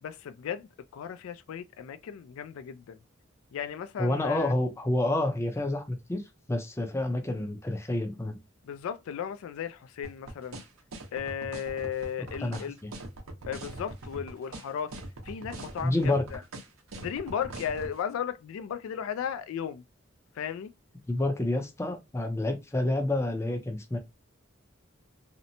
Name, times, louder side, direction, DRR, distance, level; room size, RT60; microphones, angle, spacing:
voice 1, 0.0-3.0 3.5-4.5 8.7-10.6 11.1-12.8 13.5-15.0 15.3-16.4 17.0-19.8 20.4-20.7, left 8 dB, 80° left, 0.3 m, -35 dB
voice 2, 4.0-6.2 6.5-8.4 12.4-12.7 15.8-16.2 21.1-24.0, left 1 dB, 15° left, 0.5 m, -28 dB
sound 1, 10.0-17.9, right 2 dB, 85° right, 0.7 m, -41 dB
2.8 x 2.0 x 2.6 m
head